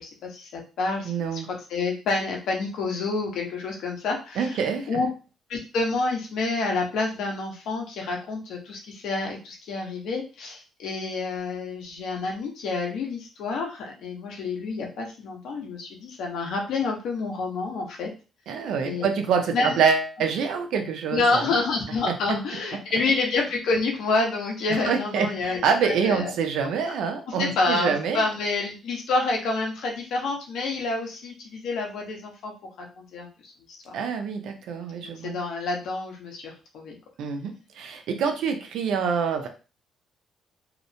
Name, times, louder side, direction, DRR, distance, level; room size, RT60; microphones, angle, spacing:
voice 1, 0.0-1.4 1.7-4.5 4.9-5.1 5.5-18.1 18.8-19.1 19.5-19.7 21.1-26.3 27.3-33.5 33.8-34.0 35.0-37.0, left 3 dB, 75° left, 0 dB, 0.8 m, -28 dB
voice 2, 1.1-1.5 4.4-5.0 18.5-21.5 22.1-22.4 24.9-28.2 33.9-35.4 37.2-39.5, right 6 dB, 75° right, 5 dB, 0.5 m, -26 dB
2.9 x 2.0 x 2.7 m, 0.32 s
cardioid pair, 120°, 0 cm